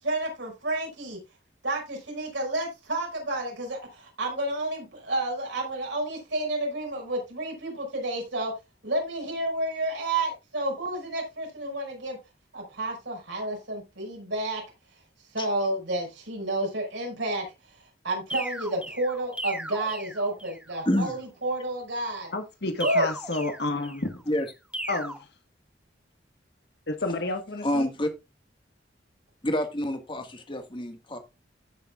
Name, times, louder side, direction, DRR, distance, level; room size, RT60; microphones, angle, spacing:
voice 1, 0.0-1.2 1.6-8.5 8.8-12.2 12.5-14.6 15.3-17.5 18.0-22.3 22.8-23.1, right 1 dB, 75° right, 5.8 m, -30 dB
sound 1, 18.3-20.7 22.8-24.2 24.7-25.2, right 1 dB, 5° right, 1.9 m, -37 dB
voice 2, 22.3-24.2 24.9-25.2 26.9-27.9, left 2 dB, 60° left, 1.5 m, -30 dB
voice 3, 27.6-28.1 29.4-31.2, left 1 dB, 25° left, 1.7 m, -28 dB
15.5 x 6.8 x 2.4 m
head